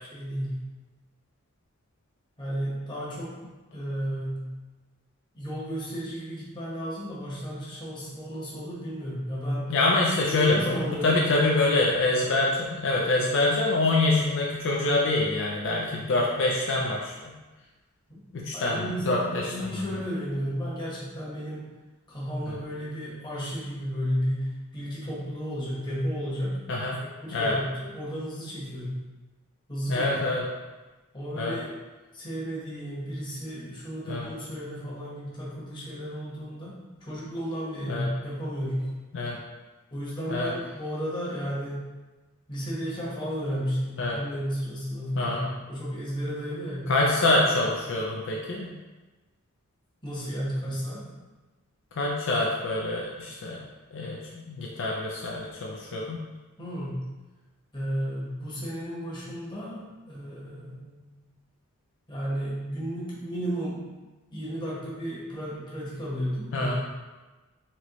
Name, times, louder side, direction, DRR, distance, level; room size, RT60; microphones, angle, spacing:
voice 1, 0.1-0.6 2.4-3.4 3.7-4.5 5.3-9.7 10.2-11.7 18.1-18.2 18.5-21.7 22.1-26.6 27.2-29.0 29.7-30.2 31.1-31.7 32.1-36.7 37.0-38.9 39.9-41.8 42.5-47.0 50.0-51.0 56.6-57.0 57.7-61.1 62.1-63.8 64.3-66.8, equal, 20° left, -7 dB, 1.2 m, -33 dB
voice 2, 9.7-17.1 18.3-18.8 19.1-19.5 22.5-22.6 26.7-27.0 27.3-27.5 29.9-30.4 31.4-31.6 34.1-34.3 37.9-38.1 39.1-39.4 40.3-40.5 44.0-44.2 45.2-45.5 46.9-48.7 51.9-53.6 53.9-54.2 54.5-56.2 66.5-66.8, left 2 dB, 60° left, -2 dB, 0.5 m, -25 dB
4.2 x 3.0 x 3.0 m, 1.2 s
head